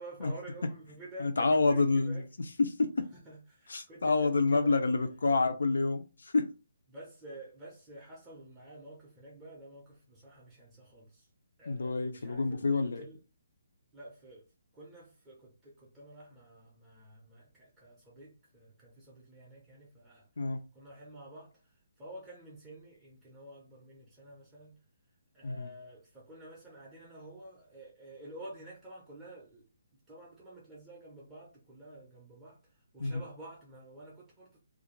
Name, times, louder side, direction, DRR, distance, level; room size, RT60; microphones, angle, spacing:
voice 1, 0.0-2.3 3.2-4.8 6.9-11.3 11.6-13.2 13.9-14.5 14.7-20.3 20.7-24.8 25.3-29.7 29.9-34.6, right 1 dB, 10° right, 0.4 m, -50 dB
voice 2, 1.2-2.2 2.6-2.9 3.7-6.5 11.7-13.0 20.4-20.6 25.4-25.7 33.0-33.2, left 3 dB, 90° left, 0.5 m, -28 dB
2.4 x 2.2 x 3.0 m
hypercardioid pair, 180°, 0 cm